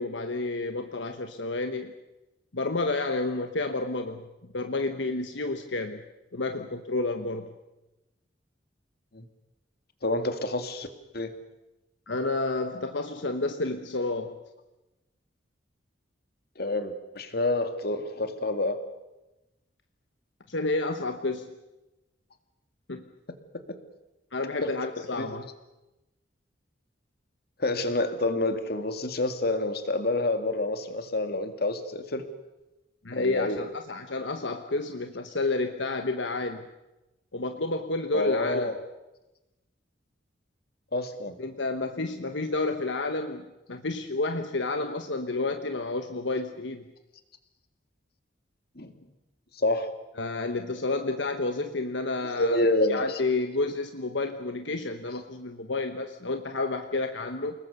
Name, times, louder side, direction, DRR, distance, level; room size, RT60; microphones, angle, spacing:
voice 1, 0.0-1.9 2.5-4.3 4.5-6.0 6.3-7.5 12.1-14.4 20.5-21.6 22.9-23.1 24.3-25.4 33.0-36.6 37.3-38.7 41.4-46.8 50.2-52.6 52.9-57.5, left 3 dB, 75° left, 6 dB, 1.3 m, -30 dB
voice 2, 10.0-10.9 11.1-11.3 16.6-18.8 23.5-23.8 24.6-25.3 27.6-32.2 33.1-33.6 38.1-38.8 40.9-41.4 48.8-48.9 49.6-49.9 52.4-53.2, left 2 dB, 55° left, 8 dB, 2.2 m, -28 dB
29.0 x 19.5 x 6.8 m, 1.0 s
head